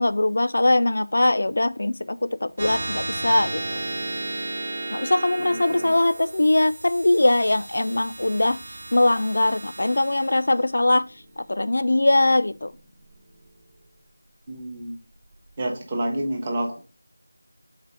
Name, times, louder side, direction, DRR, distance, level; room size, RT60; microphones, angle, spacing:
voice 1, 0.0-3.6 4.9-8.6 8.9-11.1 11.4-12.7, left 2 dB, 50° left, 0.4 m, -21 dB
sound 1, 2.6-13.4, right 2 dB, 35° right, 1.0 m, -34 dB
voice 2, 5.4-5.9 14.5-15.0 15.6-16.8, right 1 dB, 15° right, 0.7 m, -29 dB
4.2 x 4.1 x 5.5 m
figure-of-eight pair, 180°, 0 cm